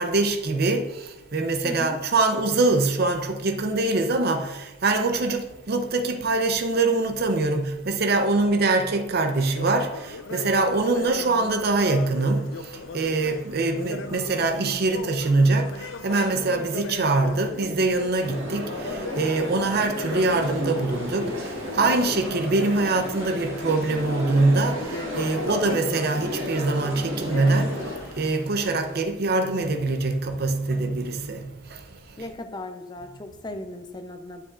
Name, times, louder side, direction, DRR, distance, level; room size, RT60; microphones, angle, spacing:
voice 1, 0.0-32.3, right 3 dB, 50° right, 0.6 m, -24 dB
voice 2, 1.6-2.0 32.2-34.4, left 1 dB, 20° left, 0.6 m, -37 dB
sound 1, 9.3-28.3, left 3 dB, 75° left, 0.6 m, -39 dB
sound 2, 18.2-28.0, equal, 80° right, 1.6 m, -33 dB
sound 3, 18.7-29.0, equal, 15° right, 1.2 m, -47 dB
9.6 x 7.8 x 2.5 m
head